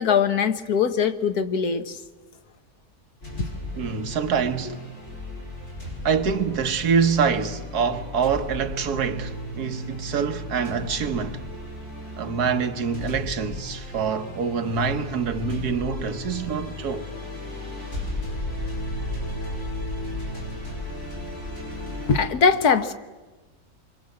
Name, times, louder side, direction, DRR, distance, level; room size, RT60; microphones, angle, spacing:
voice 1, 0.0-2.0 22.1-22.9, left 6 dB, 75° left, 1.7 m, -21 dB
sound 1, 3.2-22.2, left 1 dB, 50° left, 6.9 m, -35 dB
voice 2, 3.8-4.8 6.0-11.4 12.2-17.1, right 6 dB, 85° right, 1.7 m, -25 dB
26.0 x 24.5 x 7.8 m
omnidirectional pair, 1.6 m